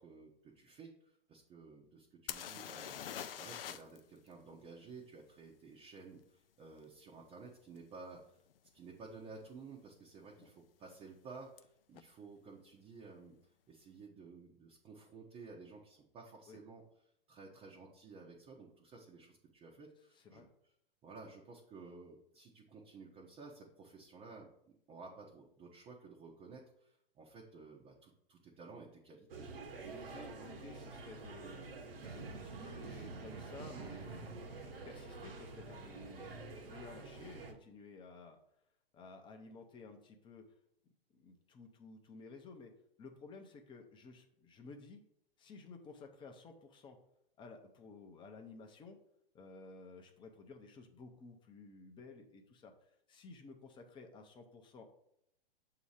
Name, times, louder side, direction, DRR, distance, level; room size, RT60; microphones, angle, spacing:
voice 1, 0.0-8.2 8.7-13.4 13.7-16.8 17.3-20.4 21.0-29.5, right 4 dB, 20° right, -2 dB, 0.8 m, -54 dB
sound 1, 2.3-4.0 4.3-4.4 7.8-7.9 8.5-8.7 8.9-9.5 11.6-11.7 11.9-12.0, left 9 dB, 70° left, 0.5 m, -44 dB
sound 2, 29.3-37.5, right 3 dB, 70° right, 1.2 m, -49 dB
voice 2, 29.8-31.7 32.0-34.3 34.8-38.4 38.9-40.4 41.1-42.7 43.0-45.0 45.4-47.0 47.4-49.0 49.3-52.7 53.1-54.9, left 4 dB, 15° left, 4 dB, 0.7 m, -54 dB
sound 3, 32.0-36.0, right 5 dB, 85° right, 0.7 m, -51 dB
7.0 x 2.9 x 4.8 m, 0.73 s
hypercardioid pair, 115°, 29 cm